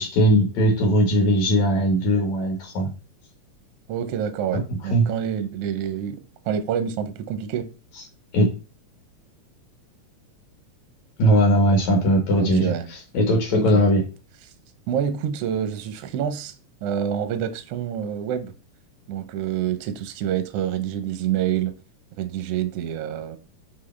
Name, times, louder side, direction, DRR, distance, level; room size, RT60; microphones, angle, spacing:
voice 1, 0.0-2.9 4.9-5.0 8.3-8.5 11.2-14.0, equal, 70° left, 2.9 m, -19 dB
voice 2, 3.9-6.2 6.5-7.7 12.4-12.9 13.5-13.8 14.9-16.5 16.8-18.5 19.1-21.7 22.2-23.4, right 9 dB, 70° right, 1.6 m, -27 dB
6.0 x 5.6 x 3.3 m
omnidirectional pair, 3.4 m